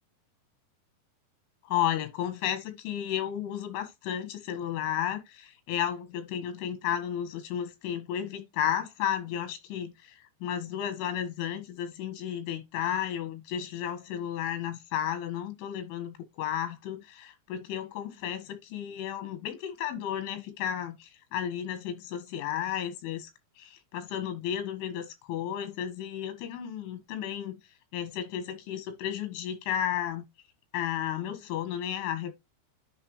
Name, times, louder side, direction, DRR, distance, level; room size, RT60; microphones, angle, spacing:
voice 1, 1.7-10.2 10.4-23.3 23.6-27.6 27.9-30.2 30.7-32.3, left 10 dB, 90° left, 4.0 m, -33 dB
10.5 x 3.7 x 3.2 m
omnidirectional pair, 5.4 m